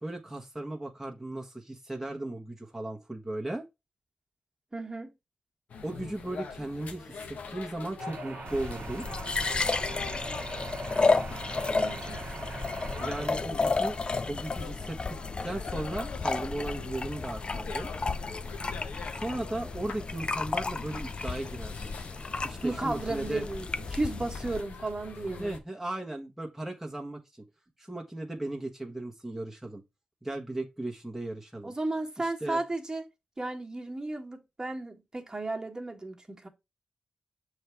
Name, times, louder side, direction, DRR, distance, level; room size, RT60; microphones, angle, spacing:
voice 1, 0.0-3.6 5.8-9.1 13.0-14.0 14.3-17.9 19.1-21.9 22.4-23.5 25.2-27.4 27.8-29.8 30.2-31.7 32.2-32.6, right 1 dB, 5° right, 1.2 m, -36 dB
voice 2, 4.7-5.1 11.7-12.2 22.6-25.6 31.6-33.0 33.4-36.5, right 2 dB, 30° right, 1.5 m, -34 dB
sound 1, 5.7-25.6, left 5 dB, 85° left, 0.9 m, -44 dB
sound 2, 8.0-13.3, right 5 dB, 80° right, 0.8 m, -42 dB
sound 3, 8.5-24.6, left 3 dB, 45° left, 0.4 m, -32 dB
6.4 x 3.4 x 4.6 m
cardioid pair, 55°, 2 cm